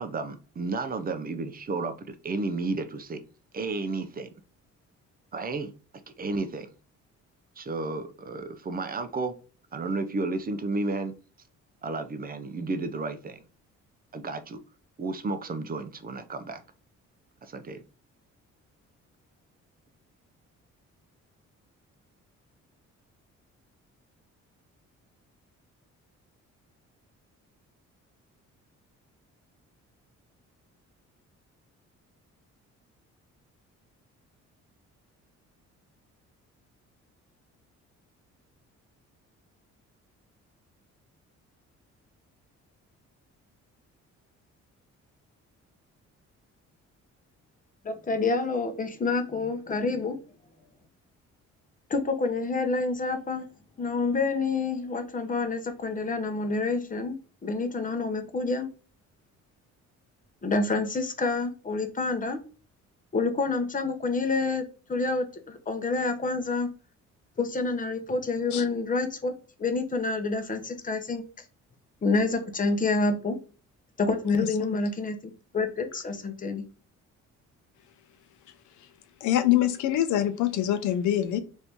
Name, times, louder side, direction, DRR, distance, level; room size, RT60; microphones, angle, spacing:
voice 1, 0.0-3.2 3.5-4.3 5.3-5.7 6.2-6.7 7.6-9.3 9.7-11.1 11.8-13.4 14.1-14.6 15.0-16.6 17.4-17.8, right 3 dB, 30° right, 0.5 m, -32 dB
voice 2, 47.8-50.2 51.9-53.5 53.8-57.2 57.4-58.7 60.4-62.4 63.1-66.7 67.4-69.3 69.6-71.2 72.0-73.4 74.0-75.2 75.5-76.6, left 3 dB, 25° left, 0.7 m, -28 dB
voice 3, 74.3-74.8 78.8-78.9 79.2-81.4, left 12 dB, 80° left, 0.5 m, -25 dB
2.9 x 2.6 x 3.5 m
cardioid pair, 90°, 30 cm